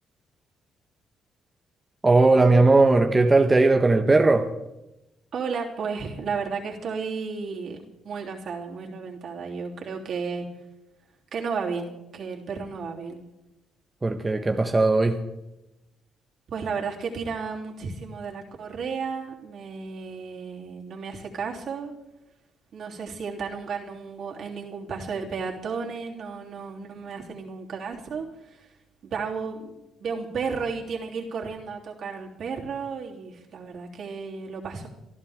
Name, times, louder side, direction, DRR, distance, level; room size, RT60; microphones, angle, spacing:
voice 1, 2.0-4.5 14.0-15.2, right 3 dB, 20° right, 4 dB, 1.2 m, -18 dB
voice 2, 5.3-7.8 8.0-10.5 11.3-13.2 16.5-21.9 22.7-28.7 29.0-34.9, right 5 dB, 65° right, -1 dB, 3.4 m, -33 dB
24.5 x 13.5 x 3.7 m, 0.94 s
cardioid pair, 90°, 0 cm